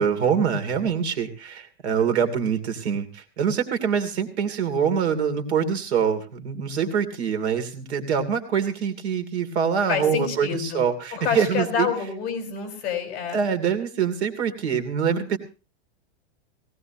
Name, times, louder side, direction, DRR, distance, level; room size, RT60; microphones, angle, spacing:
voice 1, 0.0-11.9 13.3-15.4, right 7 dB, 75° right, 9 dB, 2.9 m, -24 dB
voice 2, 9.9-10.9 11.1-13.4, left 6 dB, 30° left, 3 dB, 4.8 m, -28 dB
19.5 x 17.5 x 2.9 m, 0.32 s
supercardioid pair, 175°, 33 cm